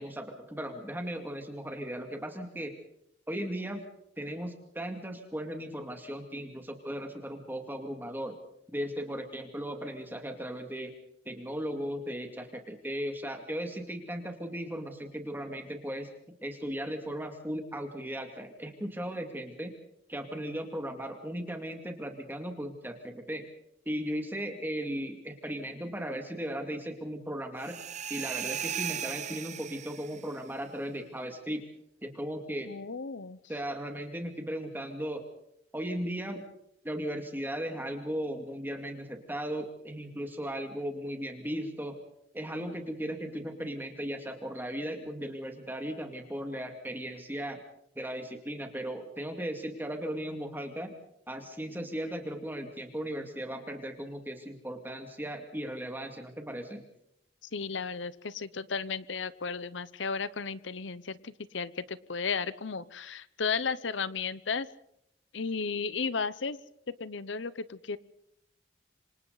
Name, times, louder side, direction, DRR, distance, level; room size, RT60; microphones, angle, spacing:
voice 1, 0.0-2.7 3.3-3.9 4.2-8.4 8.7-10.9 11.3-16.1 16.4-19.7 20.1-23.5 23.9-27.8 28.1-31.6 32.0-32.7 33.5-35.2 35.7-36.5 36.8-42.0 42.3-47.6 48.0-50.9 51.3-56.8, equal, 10° right, 4 dB, 2.3 m, -37 dB
sound 1, 27.6-30.3, right 9 dB, 40° right, 0.8 m, -37 dB
voice 2, 32.6-33.4 57.5-64.7 65.3-66.6 67.0-68.0, left 5 dB, 75° left, 17 dB, 0.9 m, -34 dB
27.0 x 26.5 x 4.1 m, 0.75 s
head